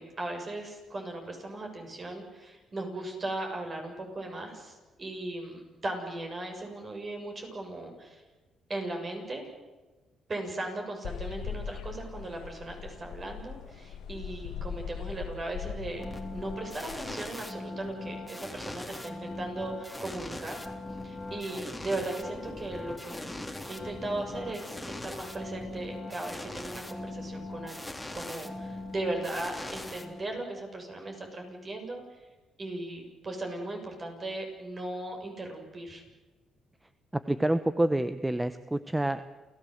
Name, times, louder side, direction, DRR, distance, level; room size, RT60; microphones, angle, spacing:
voice 1, 0.0-8.2 8.7-9.5 10.3-16.0 16.3-20.6 21.0-23.3 23.7-32.2 32.6-36.0, right 2 dB, 35° right, 3 dB, 7.0 m, -37 dB
sound 1, 11.0-17.1, left 7 dB, 85° left, 2.2 m, -40 dB
sound 2, 15.9-30.6, left 2 dB, 5° left, 3.0 m, -40 dB
voice 2, 37.1-39.3, right 1 dB, 10° right, 12 dB, 0.9 m, -28 dB
28.5 x 16.0 x 8.0 m, 1.2 s
cardioid pair, 90°, 0 cm